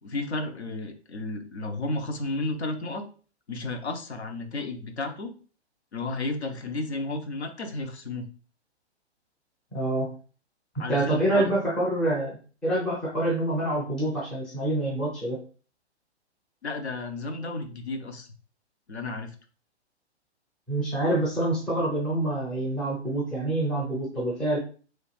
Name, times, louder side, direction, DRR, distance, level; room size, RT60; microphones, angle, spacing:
voice 1, 0.0-3.1 3.5-5.3 5.9-8.2 10.8-11.5 16.6-18.3 18.9-19.3, left 2 dB, 75° left, 5 dB, 0.7 m, -32 dB
voice 2, 9.7-10.1 10.9-12.4 12.6-15.4 20.7-24.6, right 1 dB, 5° left, -6 dB, 0.5 m, -26 dB
3.1 x 2.4 x 3.1 m, 0.38 s
figure-of-eight pair, 120°, 34 cm